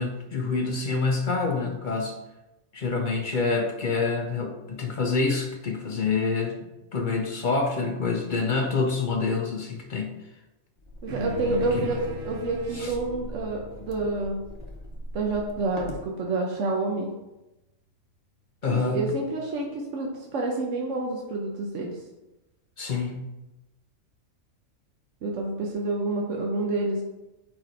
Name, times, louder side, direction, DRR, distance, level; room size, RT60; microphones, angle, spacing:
voice 1, 0.0-2.2 2.7-10.1 11.7-11.9 12.7-12.9 18.6-19.1 22.8-23.3, left 4 dB, 55° left, 3 dB, 0.5 m, -27 dB
sound 1, 10.8-16.1, left 1 dB, 35° left, 0.9 m, -41 dB
voice 2, 11.0-14.4 15.1-17.1 18.7-21.9 25.2-27.0, right 2 dB, 70° right, -1 dB, 1.1 m, -28 dB
sound 2, 11.1-15.8, equal, 50° right, 0.8 m, -38 dB
4.9 x 4.6 x 4.5 m, 1.0 s
omnidirectional pair, 1.4 m